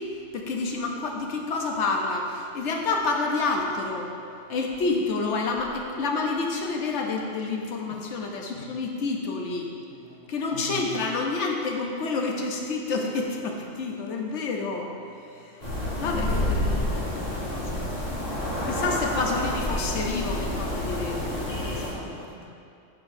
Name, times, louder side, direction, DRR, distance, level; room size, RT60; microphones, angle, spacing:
voice 1, 0.3-4.1 4.5-9.7 10.3-14.9 15.3-15.6 16.0-17.8 18.6-22.3, left 3 dB, 80° left, 1 dB, 1.1 m, -29 dB
voice 2, 9.9-10.3 18.7-19.3 22.0-22.5, right 2 dB, 30° right, 0 dB, 0.5 m, -49 dB
sound 1, 15.6-21.9, left 1 dB, 60° left, 2.2 m, -29 dB
9.0 x 6.8 x 2.7 m, 2.7 s
omnidirectional pair, 1.2 m